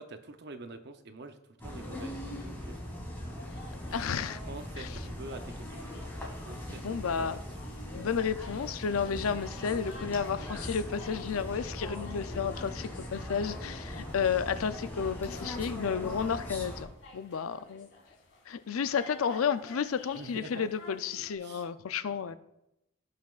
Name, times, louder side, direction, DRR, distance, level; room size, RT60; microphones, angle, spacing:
voice 1, 0.0-2.8 3.9-4.1 4.4-5.9 6.4-7.4 20.1-20.7 21.4-21.7 22.1-22.4, right 2 dB, 55° right, 8 dB, 0.7 m, -46 dB
sound 1, 1.6-16.8, left 1 dB, 10° left, 1.9 m, -40 dB
sound 2, 3.4-21.3, left 2 dB, 65° left, 2.3 m, -53 dB
voice 2, 3.9-4.4 4.8-4.9 6.7-7.4 7.9-17.9 18.5-22.4, left 6 dB, 85° left, 12 dB, 0.5 m, -32 dB
17.0 x 5.9 x 2.4 m, 0.87 s
head